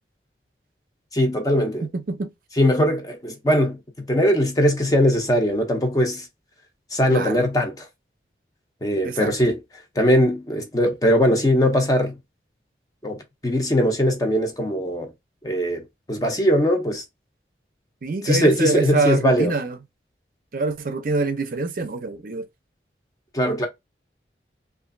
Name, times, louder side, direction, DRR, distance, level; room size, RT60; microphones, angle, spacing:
voice 1, 1.1-1.9 2.6-6.2 6.9-7.8 8.8-9.6 10.0-12.2 13.0-15.1 15.4-17.0 18.2-19.5 23.3-23.7, equal, 20° left, 0.6 m, -20 dB
voice 2, 7.1-7.4 9.0-9.3 18.0-19.8 20.5-22.4, right 3 dB, 50° right, 0.5 m, -25 dB
2.9 x 2.5 x 2.5 m
head